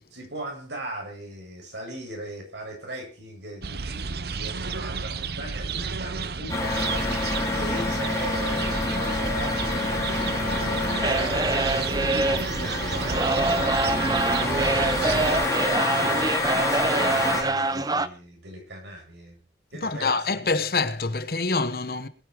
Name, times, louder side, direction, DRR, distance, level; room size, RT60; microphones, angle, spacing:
voice 1, 0.1-16.4 16.7-19.4 19.7-20.2, right 1 dB, 85° right, 7.9 m, -38 dB
sound 1, 3.6-15.5, right 4 dB, 65° right, 0.8 m, -31 dB
sound 2, 6.5-17.4, left 2 dB, 20° left, 4.5 m, -28 dB
sound 3, 11.0-18.1, right 2 dB, 20° right, 0.8 m, -25 dB
voice 2, 19.7-22.1, left 3 dB, 55° left, 1.2 m, -26 dB
21.0 x 10.0 x 4.8 m
head